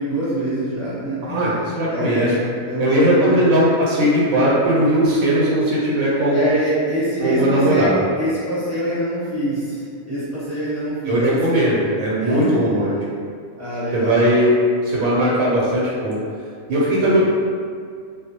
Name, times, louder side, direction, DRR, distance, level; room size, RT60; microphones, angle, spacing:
voice 1, 0.0-3.4 6.3-11.5 12.2-12.8 13.6-14.2 16.9-17.3, equal, 15° right, -13 dB, 0.8 m, -25 dB
voice 2, 1.3-2.3 2.8-6.5 7.2-7.9 11.1-12.9 13.9-14.5 14.8-16.2 16.7-17.3, right 1 dB, 90° right, -6 dB, 1.0 m, -18 dB
2.3 x 2.0 x 2.8 m, 2.1 s
omnidirectional pair, 1.4 m